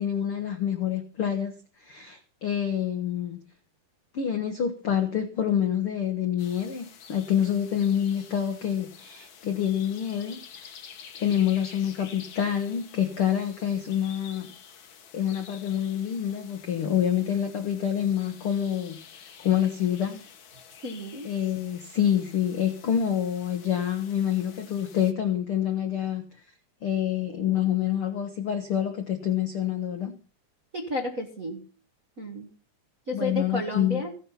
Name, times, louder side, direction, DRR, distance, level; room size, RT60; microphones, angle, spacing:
voice 1, 0.0-1.5 1.8-3.4 4.1-10.7 11.1-14.5 15.1-19.0 19.4-20.3 21.2-26.2 26.8-30.1 33.1-34.0, left 9 dB, 70° left, 6 dB, 1.3 m, -27 dB
sound 1, 6.4-25.1, left 7 dB, 90° left, 1.0 m, -49 dB
voice 2, 20.8-21.3 30.7-31.6 32.2-32.5 33.1-34.1, left 1 dB, 50° right, -1 dB, 1.0 m, -32 dB
15.5 x 11.0 x 5.7 m, 0.39 s
omnidirectional pair, 4.2 m